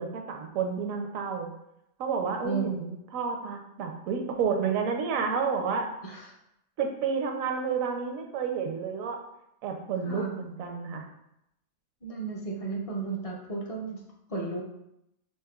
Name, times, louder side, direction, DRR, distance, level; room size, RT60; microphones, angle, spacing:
voice 1, 0.0-1.5 2.0-5.9 6.8-9.2 9.6-11.0, right 6 dB, 80° right, 3 dB, 1.0 m, -30 dB
voice 2, 6.0-6.3 10.0-10.4 12.0-14.0 14.3-14.6, right 4 dB, 40° left, -2 dB, 0.5 m, -33 dB
5.6 x 3.2 x 2.3 m, 0.82 s
omnidirectional pair, 1.4 m